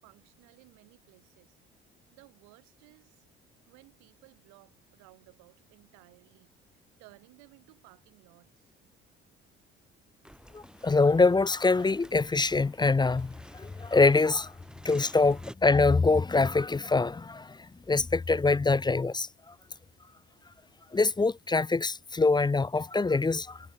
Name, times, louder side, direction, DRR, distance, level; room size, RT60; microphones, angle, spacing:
voice 1, 0.0-1.6 2.1-3.3 3.7-8.7, right 27 dB, 70° right, 5.4 m, -58 dB
sound 1, 10.3-15.5, equal, 5° right, 7.4 m, -51 dB
voice 2, 10.5-14.5 14.8-17.6 17.9-19.3 20.9-23.6, left 3 dB, 15° left, 0.6 m, -24 dB
hypercardioid pair, 50°, 30 cm